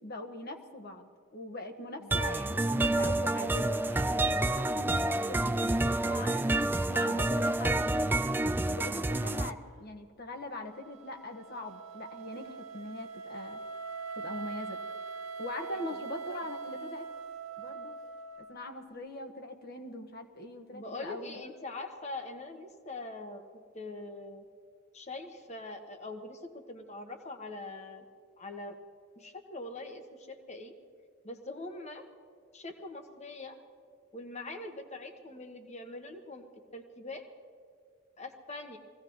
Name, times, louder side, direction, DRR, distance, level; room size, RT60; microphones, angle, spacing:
voice 1, 0.0-8.2 8.7-13.6 14.2-14.8 15.4-17.1 17.6-18.0 18.5-21.4, left 1 dB, 50° left, 4 dB, 1.4 m, -42 dB
sound 1, 2.1-9.5, right 2 dB, 10° right, 0.3 m, -28 dB
Wind instrument woodwind instrument, 10.7-18.7, right 4 dB, 70° right, 1.0 m, -42 dB
voice 2, 20.7-23.4 23.7-24.4 24.9-28.0 28.4-28.8 29.2-30.7 31.2-32.0 32.5-33.6 34.1-36.5 36.7-37.3 38.2-38.8, left 2 dB, 35° left, 5 dB, 1.3 m, -43 dB
23.5 x 17.0 x 3.1 m, 2.2 s
head